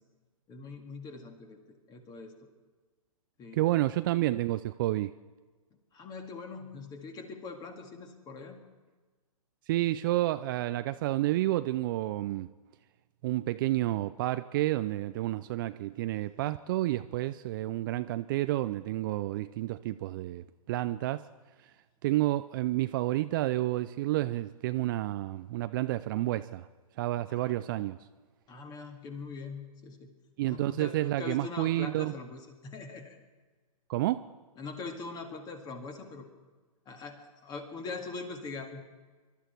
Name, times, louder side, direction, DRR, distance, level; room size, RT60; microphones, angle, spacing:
voice 1, 0.5-1.6 1.9-2.3 3.4-3.6 5.9-8.6 27.3-27.5 28.5-30.1 30.4-33.2 34.6-36.2 36.9-38.8, left 4 dB, 20° left, 5 dB, 2.1 m, -42 dB
voice 2, 3.5-5.1 9.7-12.5 13.2-21.2 21.6-21.7 22.0-26.7 27.0-28.0 30.4-32.1 33.9-34.3, right 16 dB, 35° right, 12 dB, 0.4 m, -30 dB
24.5 x 13.0 x 4.5 m, 1.4 s
hypercardioid pair, 130°, 19 cm